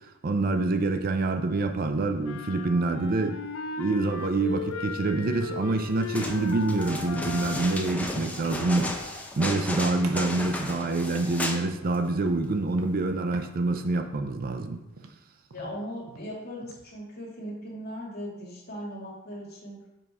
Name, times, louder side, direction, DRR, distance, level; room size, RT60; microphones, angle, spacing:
voice 1, 0.2-3.4 3.8-14.8, right 2 dB, 45° right, 7 dB, 0.5 m, -26 dB
sound 1, 2.2-8.0, left 4 dB, 70° left, 0.6 m, -37 dB
sound 2, 6.0-11.7 11.9-12.0, left 1 dB, 5° left, 0.6 m, -34 dB
sound 3, 10.0-11.9 12.2-12.5 12.8-13.0 13.3-16.9, right 3 dB, 80° right, 0.7 m, -47 dB
voice 2, 15.5-19.8, equal, 50° left, -3 dB, 2.1 m, -38 dB
5.4 x 4.6 x 5.4 m, 0.93 s
head